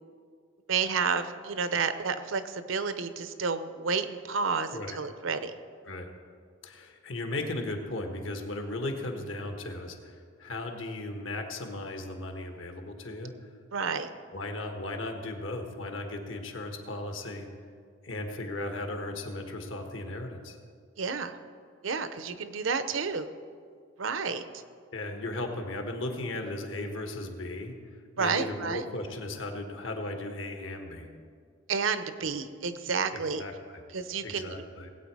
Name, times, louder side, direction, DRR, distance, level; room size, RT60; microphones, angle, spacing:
voice 1, 0.7-5.5 13.7-14.1 21.0-21.3 21.8-23.3 24.0-24.4 28.2-28.8 31.7-33.4 33.9-34.7, right 5 dB, 75° right, 11 dB, 0.8 m, -30 dB
voice 2, 6.6-13.3 14.3-17.5 18.0-20.6 24.9-27.7 28.2-31.1 33.1-33.8 34.2-34.9, left 2 dB, 75° left, 4 dB, 1.4 m, -36 dB
18.5 x 8.7 x 4.8 m, 2.1 s
head